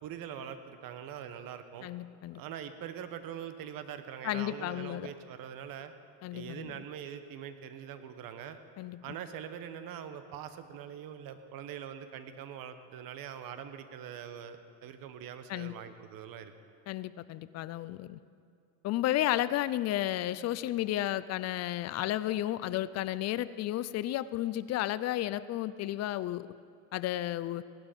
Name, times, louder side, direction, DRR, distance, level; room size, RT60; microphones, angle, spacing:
voice 1, 0.0-1.9 2.3-5.9 6.3-8.6 9.0-16.5, right 9 dB, 55° right, 10 dB, 1.2 m, -43 dB
voice 2, 1.8-2.4 4.2-5.1 6.2-6.7 8.8-9.0 15.5-15.7 16.9-18.2 18.8-26.5 26.9-27.6, left 14 dB, 40° left, 16 dB, 0.4 m, -32 dB
17.5 x 11.5 x 5.2 m, 2.4 s
supercardioid pair, 110°, 42 cm